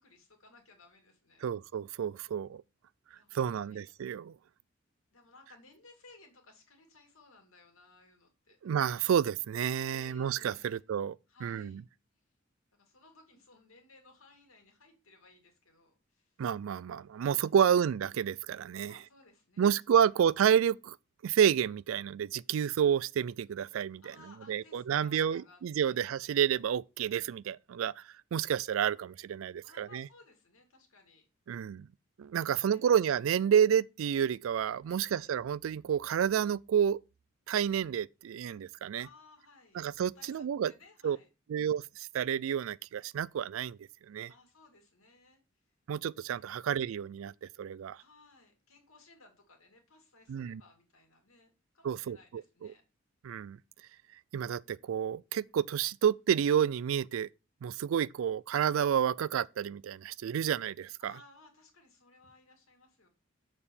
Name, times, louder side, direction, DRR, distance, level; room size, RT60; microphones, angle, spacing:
voice 1, 0.0-1.5 3.1-3.9 5.1-8.7 9.9-10.8 11.3-11.8 12.7-16.4 17.2-17.5 18.8-19.6 20.0-20.1 24.0-26.0 29.6-31.3 32.4-33.0 34.9-35.3 39.0-41.3 44.3-45.6 46.3-46.5 48.0-52.8 61.0-63.1, left 3 dB, 90° left, 2.3 m, -60 dB
voice 2, 1.4-2.6 3.3-4.3 8.6-11.2 11.4-11.8 16.4-19.0 19.6-21.0 21.2-24.1 24.5-28.0 28.3-30.1 31.5-31.9 32.2-37.0 37.5-39.1 39.7-40.7 41.0-41.2 41.5-43.8 44.1-44.3 45.9-48.0 50.3-50.6 51.8-52.2 52.6-52.7 53.2-53.6 54.3-57.3 57.6-61.1, right 8 dB, 70° right, 0.3 m, -30 dB
6.8 x 4.3 x 5.3 m
head